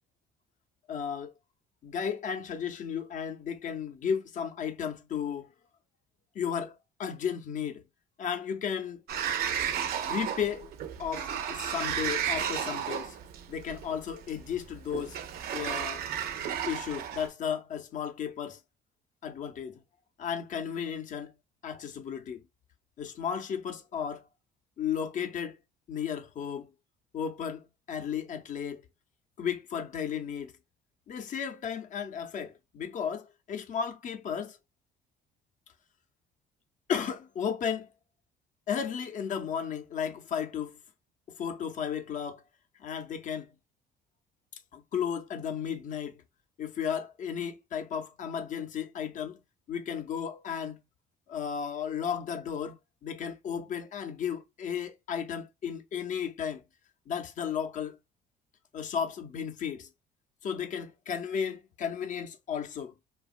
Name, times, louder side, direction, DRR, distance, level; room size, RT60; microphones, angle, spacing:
voice 1, 0.9-1.3 1.8-5.5 6.3-7.8 8.2-9.0 9.9-10.7 11.0-13.2 13.5-15.2 15.5-16.0 16.7-18.6 19.2-19.8 20.2-21.3 21.6-22.4 23.0-24.2 24.8-25.6 25.9-26.7 27.1-28.8 29.4-30.5 31.1-34.6 36.9-37.9 38.7-40.8 41.4-42.4 42.8-43.5 44.5-46.2 46.6-49.4 49.7-50.8 51.3-56.6 57.1-58.0 58.7-59.9 60.4-62.9, left 7 dB, 50° left, 0.5 m, -34 dB
Sliding door, 9.1-17.3, right 8 dB, 65° right, 0.5 m, -33 dB
2.8 x 2.3 x 2.4 m
cardioid pair, 110°, 17 cm